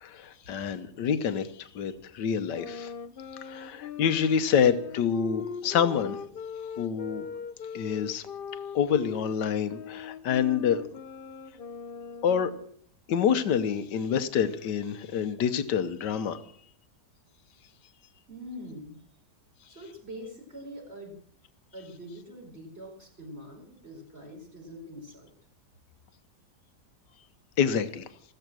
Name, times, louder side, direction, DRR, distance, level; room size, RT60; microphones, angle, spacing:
voice 1, 0.0-2.9 3.4-6.2 6.8-7.3 7.7-8.3 8.7-11.0 12.2-12.5 13.1-16.4 27.6-28.0, left 7 dB, 85° left, 12 dB, 1.6 m, -27 dB
sound 1, 2.5-9.2 9.7-12.6, left 7 dB, 50° left, 0.6 m, -40 dB
voice 2, 18.3-19.0 19.7-21.2 21.7-25.3, equal, 35° right, 0 dB, 5.1 m, -44 dB
15.5 x 13.5 x 6.2 m, 0.62 s
omnidirectional pair, 1.8 m